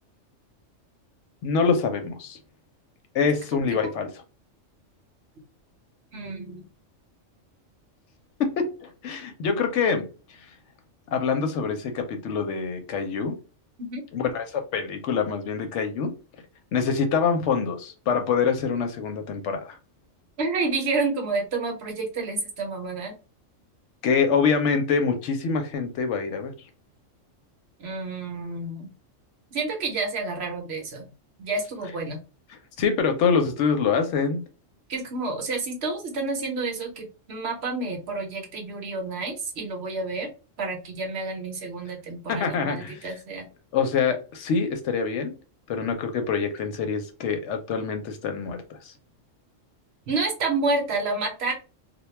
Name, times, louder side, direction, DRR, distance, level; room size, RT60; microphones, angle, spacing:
voice 1, 1.4-2.4 3.1-4.1 8.4-10.1 11.1-13.4 14.1-16.1 16.7-19.8 24.0-26.5 32.8-34.4 42.3-43.0 43.7-45.3 45.7-48.6 48.8-48.9, left 5 dB, 70° left, 6 dB, 0.8 m, -25 dB
voice 2, 6.1-6.6 13.8-14.0 20.4-23.1 27.8-28.9 29.5-31.1 31.4-32.2 34.9-40.3 40.6-43.5 50.1-51.5, right 3 dB, 60° right, 1 dB, 0.9 m, -29 dB
2.2 x 2.2 x 3.0 m, 0.34 s
omnidirectional pair, 1.3 m